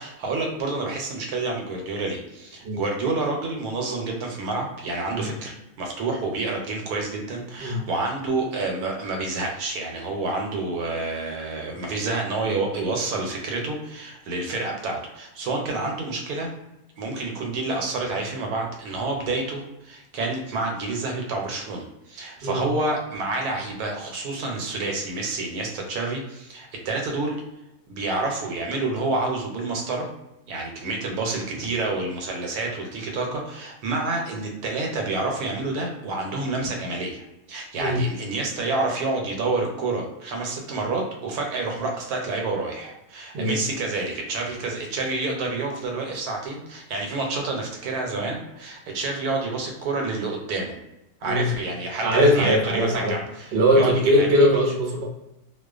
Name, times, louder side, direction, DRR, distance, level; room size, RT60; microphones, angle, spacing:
voice 1, 0.0-16.5 17.0-27.4 27.9-30.1 30.5-50.8 51.2-54.5, right 3 dB, 80° right, 1 dB, 1.1 m, -28 dB
voice 2, 51.2-51.5 52.0-53.2 53.5-55.0, equal, 60° right, -1 dB, 0.7 m, -20 dB
2.3 x 2.2 x 2.3 m, 0.91 s
omnidirectional pair, 1.6 m